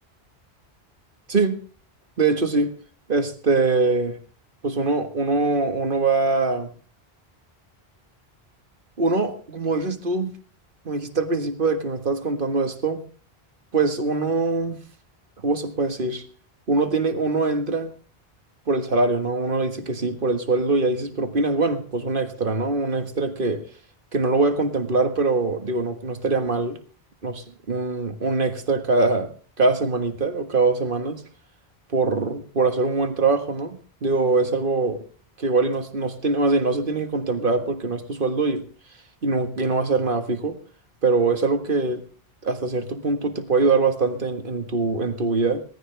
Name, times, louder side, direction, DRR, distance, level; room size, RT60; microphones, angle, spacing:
voice 1, 1.3-1.6 2.2-2.7 3.1-4.2 4.6-6.7 9.0-10.4 10.8-13.0 13.7-14.8 15.4-16.2 16.7-17.9 18.7-23.7 24.1-26.8 27.2-29.3 29.6-31.2 31.9-35.0 35.4-38.7 39.2-40.6 41.0-42.1 42.4-45.6, right 3 dB, 55° right, 7 dB, 1.7 m, -23 dB
19.0 x 14.0 x 3.3 m, 0.40 s
omnidirectional pair, 1.0 m